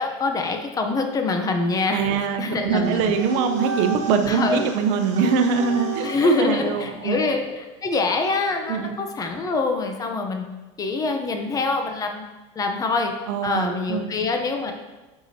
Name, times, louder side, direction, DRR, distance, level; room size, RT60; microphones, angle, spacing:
voice 1, 0.0-3.1 4.3-4.7 6.0-10.5 10.8-12.3 12.6-13.1 13.4-14.7, left 3 dB, 25° left, 4 dB, 0.7 m, -25 dB
voice 2, 1.9-6.1 6.4-7.2 8.7-8.9 13.3-14.1, right 6 dB, 70° right, 7 dB, 0.7 m, -23 dB
sound 1, 2.8-7.5, right 5 dB, 50° right, 1.3 m, -34 dB
7.9 x 4.9 x 2.8 m, 1.1 s
supercardioid pair, 135°, 16 cm